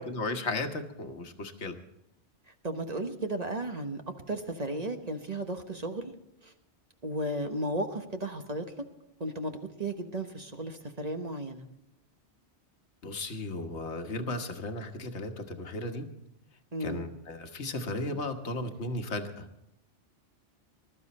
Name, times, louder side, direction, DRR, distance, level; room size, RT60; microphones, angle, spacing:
voice 1, 0.0-1.8 13.0-16.1 16.8-19.5, left 2 dB, 75° left, 6 dB, 1.5 m, -35 dB
voice 2, 2.6-4.0 4.3-6.1 6.4-6.5 7.0-8.6 9.2-11.7 16.7-17.0, right 1 dB, 35° right, 5 dB, 1.2 m, -34 dB
21.0 x 12.5 x 4.2 m, 0.79 s
omnidirectional pair, 1.2 m